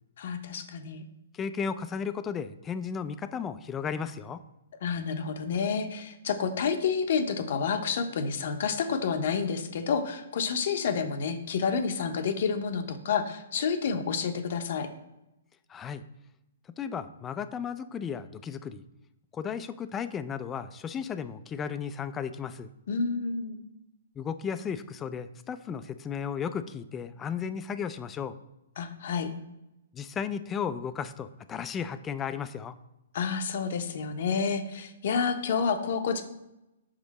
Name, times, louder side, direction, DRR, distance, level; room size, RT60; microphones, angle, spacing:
voice 1, 0.2-1.0 4.8-14.9 22.9-23.6 28.8-29.3 33.1-36.2, left 6 dB, 60° left, 7 dB, 0.7 m, -29 dB
voice 2, 1.3-4.4 15.7-16.0 16.8-18.8 19.3-22.7 24.2-28.3 29.9-32.8, left 7 dB, 20° left, 12 dB, 0.3 m, -34 dB
5.2 x 5.1 x 4.1 m, 0.91 s
hypercardioid pair, 135°, 0 cm